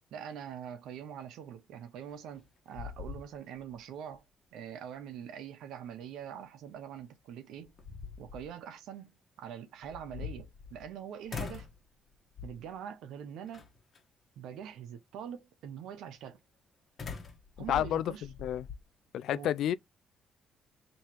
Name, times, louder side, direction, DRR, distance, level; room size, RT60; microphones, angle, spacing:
voice 1, 0.1-4.2 4.5-7.7 8.2-9.1 9.4-11.7 12.4-13.7 14.4-16.4 17.6-18.2 19.3-19.5, right 8 dB, 85° right, 0.9 m, -44 dB
sound 1, 2.1-2.5 2.7-3.8 4.1-4.2 6.9-7.0 7.6-8.5 9.8-10.9 11.3-11.8 12.4-12.7 13.5-14.0 17.0-18.8, left 6 dB, 45° left, 1.3 m, -43 dB
voice 2, 17.7-18.7 19.1-19.7, left 11 dB, 75° left, 0.3 m, -30 dB
3.1 x 3.0 x 4.5 m
cardioid pair, 90°, 0 cm